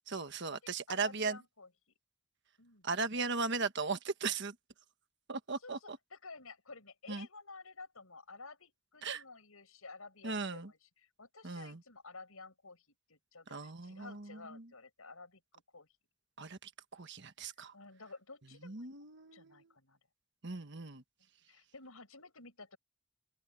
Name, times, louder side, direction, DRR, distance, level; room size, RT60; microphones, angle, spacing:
voice 1, 0.1-1.4 2.8-4.6 5.3-6.0 7.1-7.3 9.0-9.2 10.2-10.7 11.4-11.8 13.5-14.7 16.4-17.7 18.6-19.7 20.4-21.0, right 4 dB, 55° right, 1.4 m, -38 dB
voice 2, 0.6-1.9 2.6-2.9 5.6-5.8 6.1-15.4 15.7-15.9 17.7-18.9 19.3-20.0 21.5-22.8, left 3 dB, 80° left, 5.9 m, -52 dB
open air
head